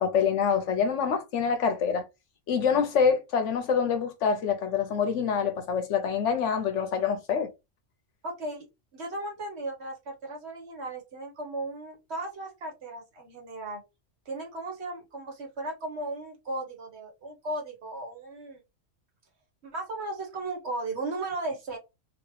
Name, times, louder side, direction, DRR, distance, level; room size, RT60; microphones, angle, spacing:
voice 1, 0.0-2.0 2.5-7.5, left 6 dB, 75° left, 0.9 m, -26 dB
voice 2, 8.2-8.7 8.9-13.8 14.2-18.6 19.6-21.8, right 2 dB, 60° right, 1.4 m, -36 dB
2.9 x 2.8 x 3.1 m
omnidirectional pair, 1.3 m